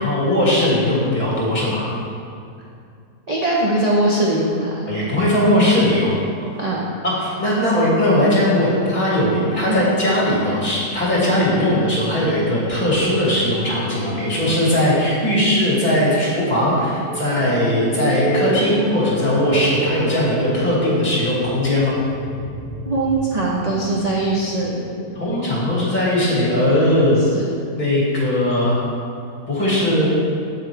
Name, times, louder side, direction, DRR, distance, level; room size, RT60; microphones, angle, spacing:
voice 1, 0.0-1.9 4.9-6.1 7.0-22.0 25.1-27.2 27.7-28.8 29.5-30.1, left 1 dB, 30° left, -7 dB, 2.3 m, -19 dB
voice 2, 3.3-4.8 6.6-6.8 9.7-9.8 22.8-24.8 27.3-27.4, right 2 dB, 35° right, -4 dB, 0.7 m, -21 dB
sound 1, 16.9-25.5, right 3 dB, 85° right, 2.0 m, -30 dB
8.1 x 7.9 x 3.4 m, 2.4 s
omnidirectional pair, 1.6 m